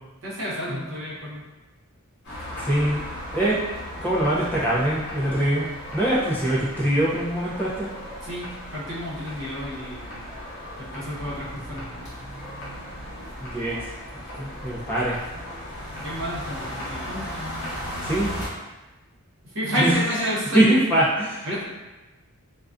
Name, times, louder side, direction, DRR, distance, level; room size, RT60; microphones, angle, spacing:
voice 1, 0.2-1.4 8.2-10.2 10.8-11.9 16.0-17.5 19.4-20.7 21.4-21.6, equal, 60° right, -7 dB, 0.8 m, -30 dB
sound 1, 2.2-18.5, equal, 50° left, 0.8 m, -36 dB
voice 2, 2.6-3.0 3.3-3.5 4.0-7.9 13.4-13.8 14.4-15.1 18.0-18.3 19.8-19.9 20.5-21.5, right 1 dB, 10° left, -8 dB, 0.4 m, -23 dB
2.4 x 2.2 x 2.3 m, 1.1 s
head